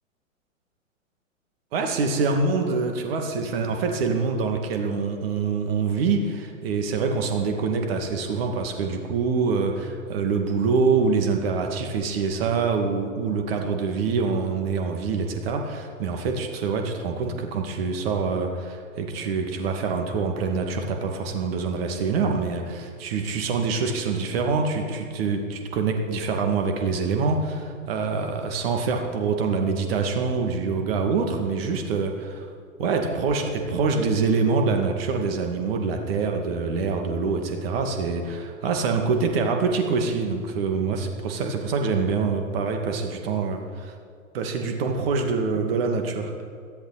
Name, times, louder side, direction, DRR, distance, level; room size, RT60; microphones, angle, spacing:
voice 1, 1.7-32.5 32.8-43.9 44.3-46.3, right 4 dB, 45° right, 4 dB, 2.3 m, -25 dB
17.5 x 14.0 x 4.2 m, 2.3 s
figure-of-eight pair, 110°, 40 cm